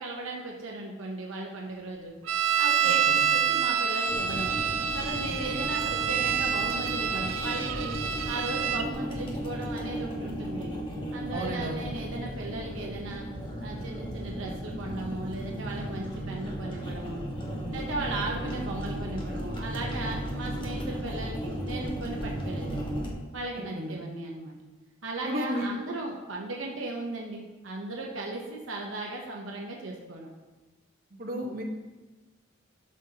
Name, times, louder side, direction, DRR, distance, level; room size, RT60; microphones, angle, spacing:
voice 1, 0.0-2.2 2.6-4.6 4.9-7.9 8.3-10.8 11.1-13.3 13.6-17.2 17.7-22.9 23.3-24.5 25.0-30.3, right 2 dB, 75° right, -1 dB, 0.9 m, -36 dB
sound 1, 2.3-8.9, right 7 dB, 90° right, 0.4 m, -27 dB
voice 2, 2.8-3.2 5.4-5.6 11.3-11.8 17.5-17.8 23.7-24.0 25.2-25.7 31.2-31.6, equal, 45° right, -2 dB, 1.2 m, -34 dB
sound 2, 4.1-23.1, equal, 25° left, 1.4 m, -35 dB
11.5 x 6.4 x 2.9 m, 1.2 s
head